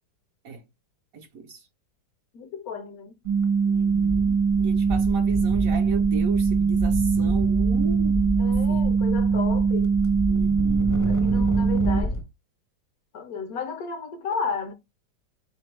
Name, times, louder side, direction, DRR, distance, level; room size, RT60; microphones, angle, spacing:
voice 1, 1.1-1.7 3.6-8.9 10.3-11.0, right 5 dB, 65° right, 0.9 m, -37 dB
voice 2, 2.3-3.2 8.4-10.0 11.0-12.2 13.1-14.7, left 6 dB, 70° left, 0.9 m, -33 dB
sound 1, 3.3-3.4 3.7-12.2, equal, 25° left, 0.4 m, -30 dB
sound 2, 3.3-12.0, right 5 dB, 80° right, 1.2 m, -22 dB
4.2 x 3.0 x 3.2 m
omnidirectional pair, 1.9 m